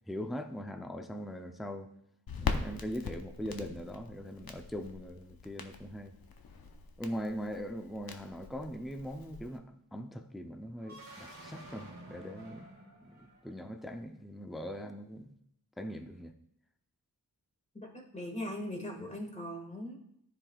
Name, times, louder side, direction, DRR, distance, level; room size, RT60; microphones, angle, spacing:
voice 1, 0.1-1.9 2.4-6.1 7.0-12.7 13.0-15.3 15.8-16.4, equal, ahead, 6 dB, 0.5 m, -41 dB
Crackle, 2.3-9.6, left 5 dB, 70° left, 0.8 m, -41 dB
sound 1, 10.8-13.8, right 2 dB, 45° right, 2.3 m, -51 dB
voice 2, 17.7-20.0, left 1 dB, 20° left, 1 dB, 1.7 m, -40 dB
13.5 x 5.0 x 2.3 m, 0.75 s
wide cardioid pair, 95°, 38 cm